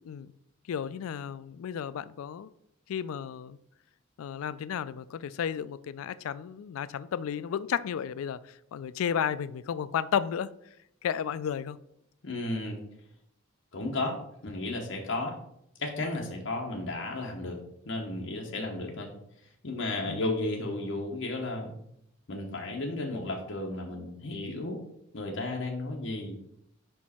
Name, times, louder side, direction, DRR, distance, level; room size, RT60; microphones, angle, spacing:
voice 1, 0.7-2.5 2.9-3.6 4.2-8.4 8.7-10.5 11.0-11.8 20.1-20.2, left 8 dB, 90° left, 0.3 m, -33 dB
voice 2, 12.2-12.8 13.7-15.4 15.8-19.1 19.6-21.7 22.3-24.8 25.1-26.3, left 2 dB, 65° left, 0.9 m, -33 dB
5.1 x 4.5 x 4.3 m
head